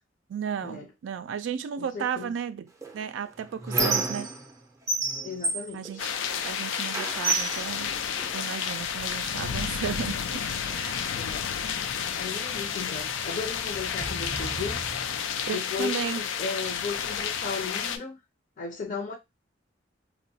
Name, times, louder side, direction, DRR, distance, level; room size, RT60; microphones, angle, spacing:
voice 1, 0.3-2.7 2.9-4.3 5.7-6.1 6.4-7.9 8.3-10.4 10.7-11.2 15.5-16.2, right 7 dB, 75° right, 0.3 m, -34 dB
voice 2, 1.8-2.3 5.2-6.0 11.1-11.4 12.2-14.8 15.5-18.2 18.6-19.1, left 4 dB, 45° left, 0.6 m, -36 dB
Squeak, 2.8-4.6 4.9-6.5 6.9-8.6 9.4-9.5 9.9-10.9, right 3 dB, 15° right, 0.5 m, -30 dB
sound 1, 6.0-18.0, left 7 dB, 85° left, 0.4 m, -31 dB
Sliding door, 10.8-15.5, right 1 dB, 70° left, 0.9 m, -42 dB
2.9 x 2.1 x 2.6 m
head